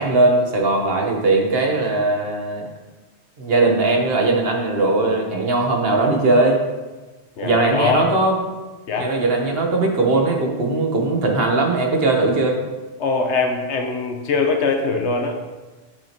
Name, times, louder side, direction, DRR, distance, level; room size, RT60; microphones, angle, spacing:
voice 1, 0.0-2.7 3.4-6.6 7.4-8.4 9.0-12.6, right 2 dB, 60° right, 2 dB, 1.2 m, -19 dB
voice 2, 7.4-8.1 8.9-9.1 13.0-15.5, left 4 dB, 85° left, 3 dB, 1.2 m, -22 dB
8.2 x 6.3 x 2.9 m, 1.2 s
omnidirectional pair, 1.1 m